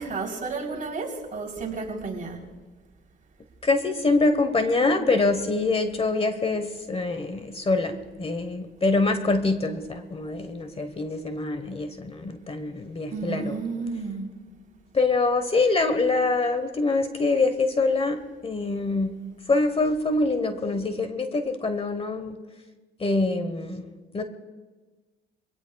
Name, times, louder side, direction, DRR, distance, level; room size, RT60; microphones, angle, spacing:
voice 1, 0.0-2.4 13.1-14.3, right 4 dB, 40° right, -1 dB, 3.6 m, -32 dB
voice 2, 3.6-13.6 14.9-19.1 19.5-22.4 23.0-24.2, left 3 dB, 30° left, 9 dB, 1.1 m, -25 dB
24.0 x 17.0 x 2.3 m, 1.3 s
cardioid pair, 90°, 20 cm